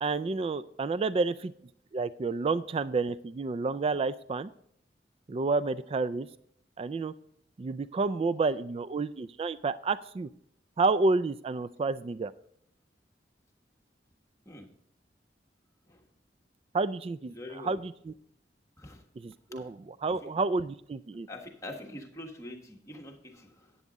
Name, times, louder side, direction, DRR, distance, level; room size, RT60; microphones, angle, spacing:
voice 1, 0.0-1.5 1.9-4.5 5.3-6.3 6.8-7.1 7.6-10.3 10.8-12.3 16.7-17.3 17.6-18.1 19.2-21.3, right 3 dB, 35° right, 16 dB, 0.3 m, -30 dB
voice 2, 17.3-17.8 18.8-19.0 19.5-19.7 20.1-20.3 21.3-23.8, left 1 dB, 20° left, 1 dB, 1.4 m, -45 dB
11.0 x 8.6 x 4.0 m, 0.66 s
head